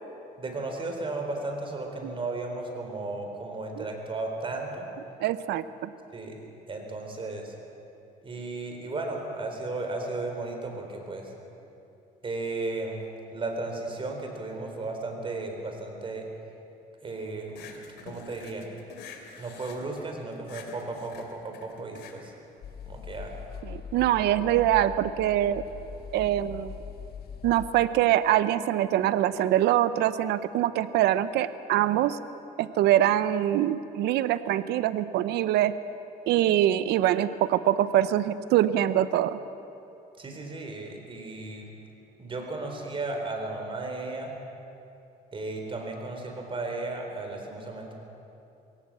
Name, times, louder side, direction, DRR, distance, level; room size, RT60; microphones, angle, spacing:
voice 1, 0.4-4.9 6.1-6.4 6.7-7.5 8.2-11.3 12.2-13.0 13.3-16.2 17.0-18.7 19.4-22.3 22.9-23.3 40.2-41.7 42.2-44.3 45.3-47.9, right 2 dB, 30° right, 3 dB, 4.2 m, -35 dB
voice 2, 5.2-5.9 23.7-25.6 26.1-26.7 27.4-32.2 32.6-35.7 36.3-39.4, right 12 dB, 80° right, 14 dB, 0.7 m, -24 dB
sound 1, 17.5-23.2, left 6 dB, 80° left, 2.6 m, -47 dB
sound 2, 22.6-27.9, left 7 dB, 65° left, 1.7 m, -42 dB
22.0 x 18.0 x 7.6 m, 2.8 s
cardioid pair, 110°, 17 cm